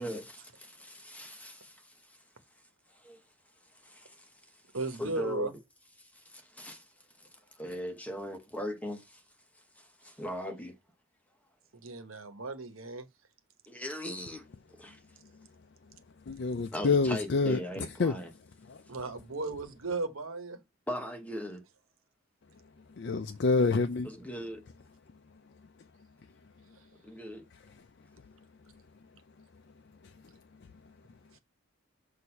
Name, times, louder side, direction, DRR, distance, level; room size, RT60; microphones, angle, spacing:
voice 1, 0.0-2.2 2.9-3.2 3.7-4.3 5.0-5.5 6.0-6.8 7.2-7.3 7.5-9.2 9.8-10.8 13.7-14.5 14.8-15.0 16.7-18.3 20.9-21.6 24.0-24.6 27.0-27.4, equal, 5° left, 0.9 m, -39 dB
voice 2, 4.7-5.5 11.7-13.1 18.9-20.6, right 3 dB, 85° right, 1.2 m, -36 dB
voice 3, 16.3-17.6 18.0-18.1 18.7-18.8 23.0-24.1 30.0-30.1, left 4 dB, 55° left, 0.4 m, -27 dB
6.4 x 2.7 x 5.5 m
head